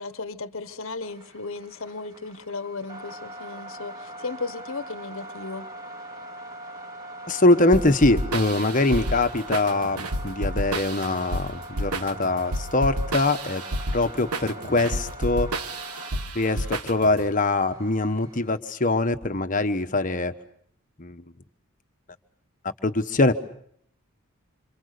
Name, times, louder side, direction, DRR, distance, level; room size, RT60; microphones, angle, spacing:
voice 1, 0.0-5.7, left 3 dB, 60° left, 1.2 m, -35 dB
sound 1, 1.0-18.6, right 1 dB, 15° right, 3.0 m, -42 dB
voice 2, 7.3-13.6 13.9-15.5 16.3-20.3 21.0-21.2 22.8-23.3, left 2 dB, 35° left, 1.2 m, -23 dB
sound 2, 7.7-17.3, right 1 dB, 85° right, 1.3 m, -30 dB
27.0 x 27.0 x 6.7 m
head